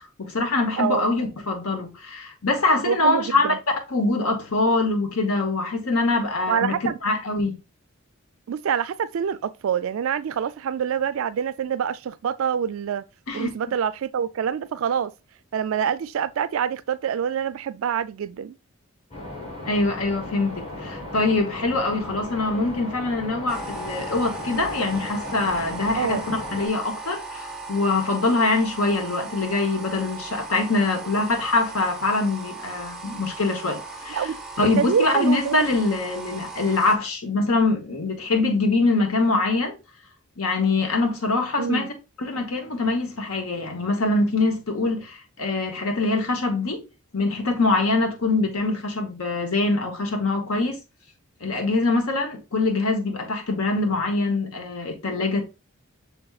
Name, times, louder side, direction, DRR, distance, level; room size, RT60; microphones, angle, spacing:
voice 1, 0.2-3.5 3.9-6.7 7.0-7.6 13.3-13.5 19.6-34.3 34.6-39.8 40.4-41.9 42.2-46.8 47.1-50.8 51.4-55.4, left 3 dB, 80° left, 1.0 m, -24 dB
voice 2, 2.8-3.6 6.5-7.0 8.5-13.0 13.3-15.1 15.5-18.6 25.9-26.2 34.1-34.4 34.8-35.6 41.6-41.9, right 8 dB, 65° right, 0.3 m, -26 dB
sound 1, 19.1-26.7, left 1 dB, 30° left, 1.5 m, -36 dB
sound 2, 23.5-37.0, right 3 dB, ahead, 0.5 m, -38 dB
6.0 x 3.4 x 2.3 m
head